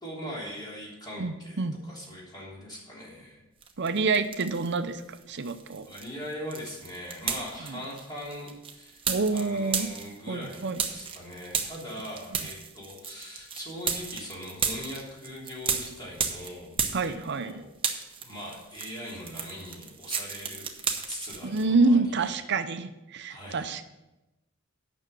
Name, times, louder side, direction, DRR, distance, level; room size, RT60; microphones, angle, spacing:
voice 1, 0.0-3.4 5.8-9.0 9.3-16.8 17.1-17.7 18.2-20.7 21.1-22.4 23.3-23.6, equal, 20° left, -5 dB, 3.2 m, -41 dB
voice 2, 1.2-1.8 3.8-5.0 5.3-5.9 7.7-7.8 9.1-9.9 10.3-10.9 16.9-17.5 21.4-23.9, right 3 dB, 60° right, 10 dB, 0.6 m, -27 dB
sound 1, 3.6-4.8 5.1-17.5 17.8-21.7, right 6 dB, 25° right, 1.0 m, -34 dB
9.2 x 6.3 x 6.2 m, 1.0 s
head